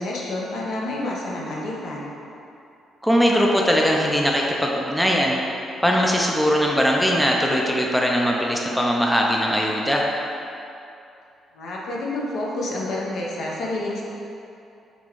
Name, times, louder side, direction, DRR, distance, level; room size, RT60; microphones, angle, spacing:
voice 1, 0.0-2.1 11.5-14.0, left 1 dB, 70° left, -3 dB, 0.7 m, -29 dB
voice 2, 3.0-5.4 5.8-10.1, equal, ahead, -2 dB, 0.4 m, -20 dB
4.2 x 2.2 x 4.4 m, 2.7 s
cardioid pair, 90°, 0 cm